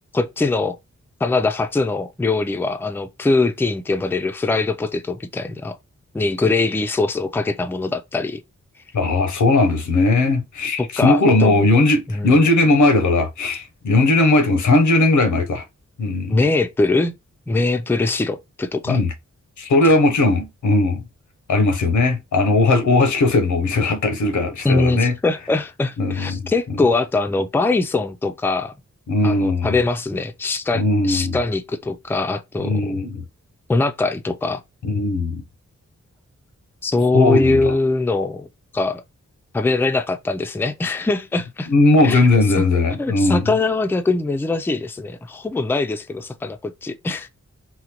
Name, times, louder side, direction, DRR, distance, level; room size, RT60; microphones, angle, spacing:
voice 1, 0.1-0.8 1.2-5.8 6.1-8.4 10.8-11.7 12.1-12.4 16.3-17.1 17.5-19.0 24.6-28.7 29.2-33.1 33.7-34.6 36.8-38.5 38.7-39.0 39.5-41.7 42.0-42.3 42.6-42.7 43.0-47.3, left 3 dB, 10° left, 0.4 m, -22 dB
voice 2, 8.9-15.6 16.0-16.4 18.9-19.1 19.6-21.0 21.5-25.2 26.0-26.5 29.1-29.8 30.7-31.4 32.6-33.2 34.8-35.4 37.1-37.7 41.7-43.5, left 2 dB, 90° left, 0.8 m, -18 dB
3.8 x 2.2 x 2.9 m
wide cardioid pair, 80°, 29 cm